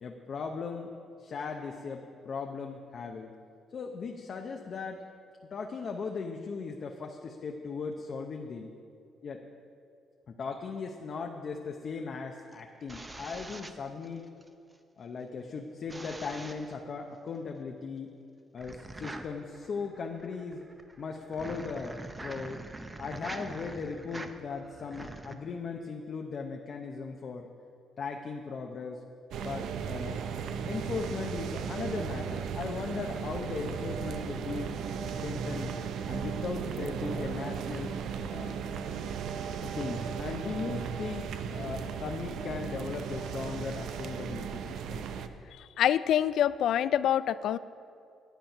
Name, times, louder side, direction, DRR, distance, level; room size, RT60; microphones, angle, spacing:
voice 1, 0.0-3.3 3.7-5.1 5.5-8.7 9.2-9.4 10.3-14.3 15.0-18.1 18.5-20.7 21.0-22.7 23.0-27.5 28.0-29.0 29.4-30.3 30.7-34.7 35.2-35.8 36.1-38.0 38.3-38.6 39.6-45.1, left 5 dB, 55° left, 2 dB, 0.8 m, -38 dB
sound 1, 12.4-14.5 15.9-16.8 18.6-25.4, right 2 dB, 20° right, 0.7 m, -44 dB
sound 2, 29.3-45.3, right 6 dB, 80° right, 0.6 m, -36 dB
voice 2, 45.8-47.6, left 10 dB, 75° left, 16 dB, 0.3 m, -25 dB
10.5 x 8.8 x 5.6 m, 2.3 s
cardioid pair, 90°, 0 cm